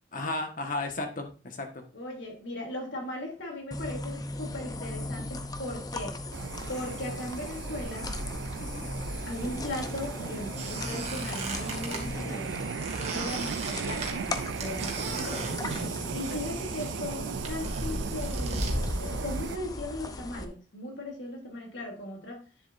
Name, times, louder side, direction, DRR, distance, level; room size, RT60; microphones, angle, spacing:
voice 1, 0.1-1.8 8.6-8.9 16.1-16.4, left 2 dB, 45° left, 5 dB, 1.5 m, -35 dB
voice 2, 1.9-6.2 6.7-8.1 9.2-12.5 13.0-14.3 14.6-15.6 16.1-22.4, left 1 dB, 85° left, 0 dB, 3.1 m, -38 dB
sound 1, 3.7-20.5, left 1 dB, 20° left, 0.7 m, -36 dB
sound 2, 6.3-19.6, right 7 dB, 80° right, 0.3 m, -37 dB
Squeak, 10.5-12.0 12.8-16.5 16.8-18.7, right 4 dB, 35° right, 2.1 m, -39 dB
10.0 x 7.5 x 2.6 m, 0.33 s
head